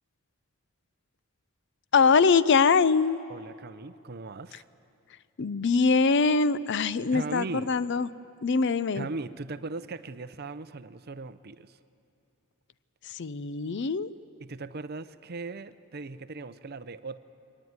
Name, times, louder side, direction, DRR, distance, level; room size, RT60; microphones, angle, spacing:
voice 1, 1.9-3.2 5.4-8.1 8.4-9.1 13.0-14.1, left 5 dB, 55° left, 17 dB, 0.5 m, -23 dB
voice 2, 3.3-4.7 7.1-7.7 8.9-11.8 14.4-17.2, right 3 dB, 45° right, 14 dB, 0.6 m, -38 dB
22.5 x 19.0 x 9.5 m, 2.6 s
head